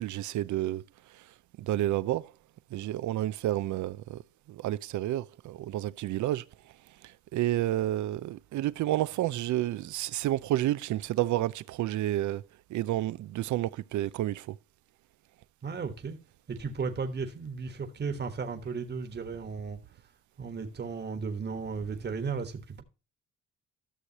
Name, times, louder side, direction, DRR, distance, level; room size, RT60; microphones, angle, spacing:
voice 1, 0.0-2.3 2.7-4.2 4.5-12.4 12.7-14.6, right 14 dB, 75° right, 0.6 m, -30 dB
voice 2, 15.6-16.2 16.5-19.8 20.4-22.8, right 5 dB, 35° right, 1.4 m, -35 dB
12.5 x 6.5 x 2.9 m
cardioid pair, 90°, 30 cm